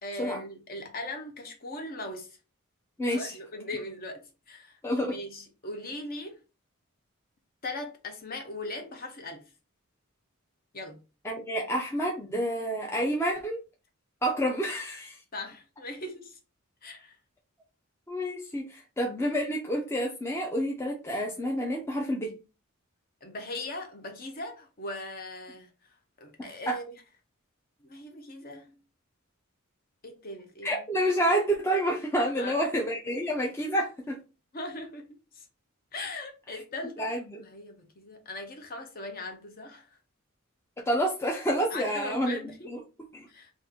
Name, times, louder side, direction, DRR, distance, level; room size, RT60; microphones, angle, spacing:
voice 1, 0.0-2.4 3.1-4.8 5.1-6.4 7.6-9.5 10.7-11.0 15.3-16.4 16.8-17.2 23.2-26.9 27.8-28.8 30.0-30.8 32.3-32.6 34.5-35.5 35.9-39.9 41.7-42.7 43.3-43.5, left 2 dB, 45° left, 0.7 m, -39 dB
voice 2, 3.0-3.4 4.8-5.1 11.2-13.6 14.2-15.2 18.1-22.3 26.4-26.8 30.6-34.2 37.0-37.4 40.9-42.4 42.7-42.8 43.1-43.3, equal, 10° left, 0.4 m, -29 dB
2.9 x 2.4 x 3.6 m
head